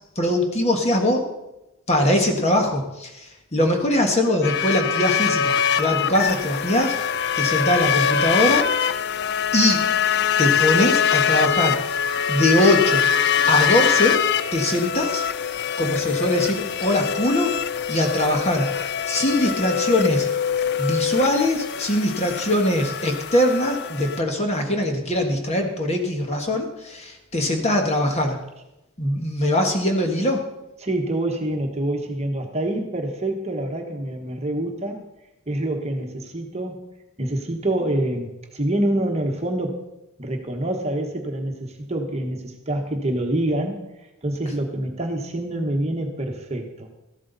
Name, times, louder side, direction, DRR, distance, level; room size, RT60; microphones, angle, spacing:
voice 1, 0.1-1.3 1.9-7.0 7.3-8.7 9.5-9.9 10.4-11.9 12.3-13.1 13.5-14.2 14.5-15.2 15.8-17.5 17.9-20.3 20.8-28.4 29.0-30.4, left 1 dB, 30° left, 3 dB, 1.5 m, -22 dB
sound 1, 4.4-24.2, left 8 dB, 50° left, 0.4 m, -23 dB
voice 2, 30.8-35.0 35.5-36.9 37.2-39.8 40.2-43.9 44.2-46.9, right 1 dB, 30° right, 3 dB, 1.2 m, -26 dB
14.0 x 12.0 x 4.0 m, 0.94 s
head